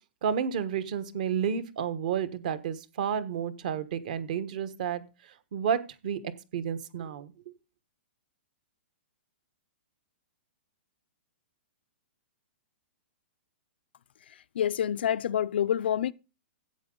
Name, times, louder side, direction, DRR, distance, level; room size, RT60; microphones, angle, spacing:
voice 1, 0.2-5.0 5.5-7.3, right 7 dB, 40° right, 1.2 m, -31 dB
voice 2, 14.6-16.1, left 9 dB, 55° left, 0.5 m, -27 dB
14.0 x 8.6 x 3.8 m
hypercardioid pair, 175°, 6 cm